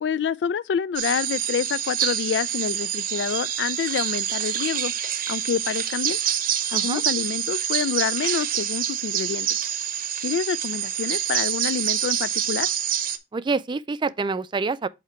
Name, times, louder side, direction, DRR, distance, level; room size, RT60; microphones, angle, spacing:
voice 1, 0.0-4.9 5.3-6.2 6.7-9.5 10.2-12.7, left 7 dB, 75° left, 0.3 m, -27 dB
sound 1, 1.0-13.2, right 10 dB, 55° right, 0.7 m, -26 dB
voice 2, 13.3-14.9, right 4 dB, 25° right, 0.3 m, -27 dB
8.3 x 2.9 x 4.3 m
head